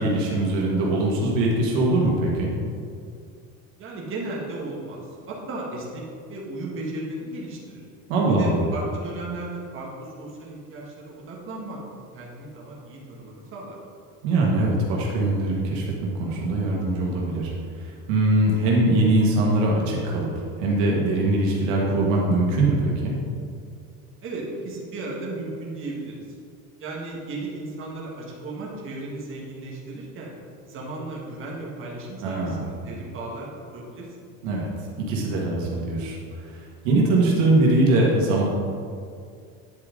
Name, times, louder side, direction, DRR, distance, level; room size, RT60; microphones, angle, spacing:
voice 1, 0.0-2.5 8.1-8.6 14.2-15.9 16.1-20.3 20.6-23.1 32.2-32.6 34.4-34.7 35.1-38.4, right 2 dB, 90° right, -3 dB, 1.9 m, -22 dB
voice 2, 3.8-5.0 5.3-6.0 6.3-7.8 8.3-11.8 12.1-13.8 24.2-26.3 26.8-30.3 30.6-34.1, right 2 dB, 35° right, -4 dB, 1.6 m, -35 dB
9.4 x 5.1 x 3.9 m, 2.3 s
cardioid pair, 135°, 38 cm